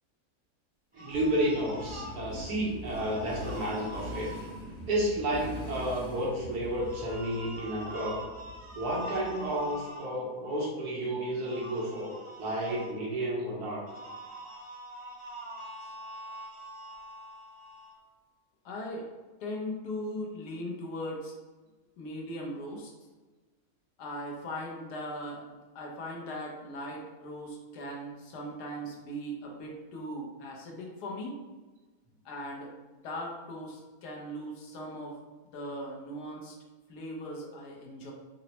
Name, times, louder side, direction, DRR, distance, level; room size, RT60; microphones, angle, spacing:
sound 1, 0.9-2.2 2.9-4.5 6.8-10.0 11.4-12.9 13.9-18.0, right 1 dB, 10° right, 0.5 m, -44 dB
voice 1, 0.9-4.3 4.9-8.2 8.7-12.1 12.4-13.8, right 1 dB, 75° right, -4 dB, 1.4 m, -31 dB
Motorcycle, 1.1-9.7, equal, 50° right, 1.1 m, -43 dB
voice 2, 18.6-19.1 19.4-21.3 22.0-22.9 24.0-31.4 32.2-35.2 35.5-36.6 36.9-38.1, equal, 85° left, -1 dB, 1.3 m, -39 dB
4.1 x 2.0 x 2.8 m, 1.3 s
omnidirectional pair, 1.7 m